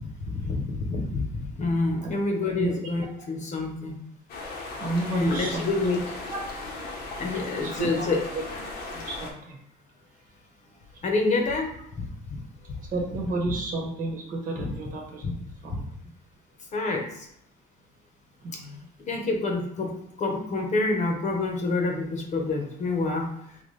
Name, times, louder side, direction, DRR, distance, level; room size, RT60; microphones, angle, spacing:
voice 1, 0.0-4.0 5.1-6.0 7.2-8.2 11.0-11.7 12.0-12.4 15.2-15.3 16.7-17.3 19.1-23.3, left 3 dB, 45° left, 1 dB, 1.0 m, -27 dB
sound 1, 4.3-9.3, left 2 dB, 70° left, 1.0 m, -37 dB
voice 2, 4.8-5.7 6.3-6.4 7.6-8.1 8.3-8.4 8.9-9.6 12.8-15.2 15.6-15.9 18.4-18.8, right 2 dB, 55° right, 0 dB, 1.2 m, -31 dB
4.1 x 2.9 x 3.3 m, 0.73 s
cardioid pair, 110°, 17 cm